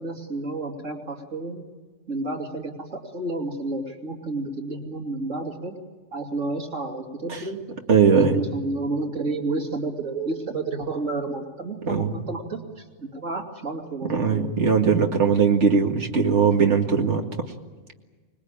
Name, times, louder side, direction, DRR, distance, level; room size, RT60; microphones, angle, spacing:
voice 1, 0.0-1.6 2.1-5.8 6.1-7.6 8.1-14.4, right 2 dB, 85° right, 2 dB, 3.2 m, -30 dB
voice 2, 7.9-8.4 11.9-12.2 14.1-17.5, right 6 dB, 70° right, 3 dB, 2.4 m, -20 dB
25.0 x 21.0 x 8.9 m, 1.4 s
omnidirectional pair, 1.3 m